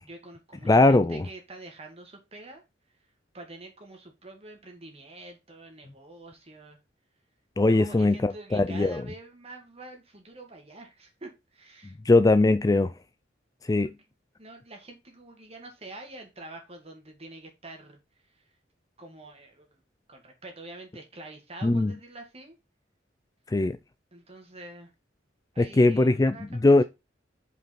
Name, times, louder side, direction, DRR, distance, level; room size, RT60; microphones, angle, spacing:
voice 1, 0.0-2.6 3.3-6.8 7.6-12.0 13.8-13.9 14.4-18.0 19.0-19.8 20.1-22.6 24.1-24.9 25.5-26.8, right 2 dB, 35° right, 2.2 m, -46 dB
voice 2, 0.7-1.3 7.6-9.0 12.1-12.9 13.7-13.9 21.6-21.9 23.5-23.8 25.6-26.4 26.6-26.8, left 2 dB, 20° left, 0.4 m, -20 dB
5.5 x 5.2 x 5.9 m
head